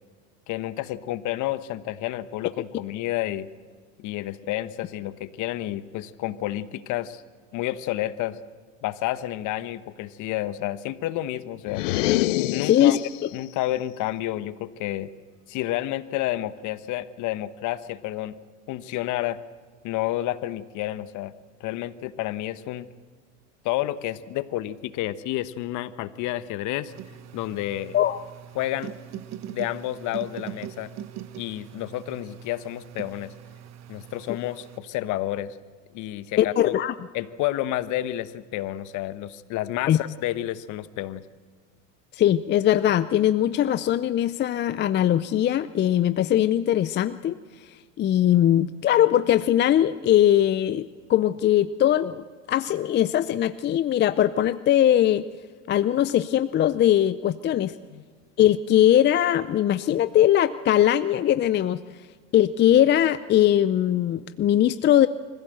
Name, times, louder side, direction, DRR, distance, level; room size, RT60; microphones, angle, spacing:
voice 1, 0.5-3.5 4.0-7.2 7.5-8.4 8.8-11.8 12.5-13.0 13.3-15.1 15.5-18.4 18.7-19.4 19.8-21.3 21.6-22.9 23.6-26.9 27.3-28.0 28.5-28.9 29.5-30.9 31.4-33.3 33.9-35.6 35.9-36.7 37.1-41.2 57.9-58.0, left 14 dB, 55° left, 14 dB, 1.1 m, -30 dB
sound 1, 11.7-13.3, left 16 dB, 80° left, 0.7 m, -25 dB
voice 2, 12.6-13.0 27.9-28.2 36.4-36.9 39.9-40.0 42.1-47.4 48.0-55.3 55.7-57.7 58.4-61.8 62.3-65.1, left 11 dB, 30° left, 14 dB, 0.5 m, -20 dB
sound 2, 26.9-34.8, right 10 dB, 45° right, 1.2 m, -41 dB
25.0 x 15.5 x 7.8 m, 1.5 s
hypercardioid pair, 95°, 37 cm